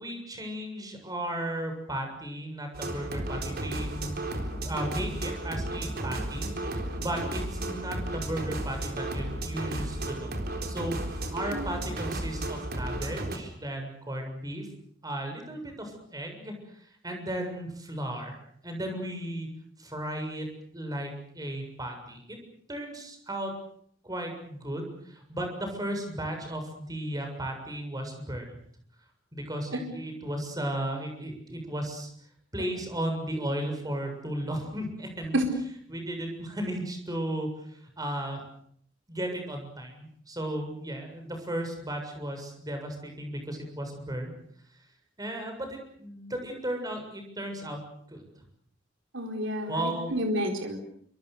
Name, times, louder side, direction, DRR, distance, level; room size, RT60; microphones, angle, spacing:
voice 1, 0.0-4.2 4.6-10.3 10.7-11.0 11.3-14.7 15.0-16.5 17.0-19.5 19.8-20.5 20.7-22.4 22.7-23.5 24.0-28.5 29.3-32.1 32.5-35.4 35.9-37.5 38.0-38.4 39.1-44.3 45.2-47.8 48.1-48.2 49.7-50.1, right 1 dB, 20° right, 4 dB, 7.1 m, -35 dB
sound 1, 2.7-13.4, right 1 dB, 55° right, 4.0 m, -33 dB
voice 2, 49.1-50.8, equal, 70° right, 4 dB, 4.4 m, -29 dB
27.0 x 25.5 x 6.8 m, 0.65 s
head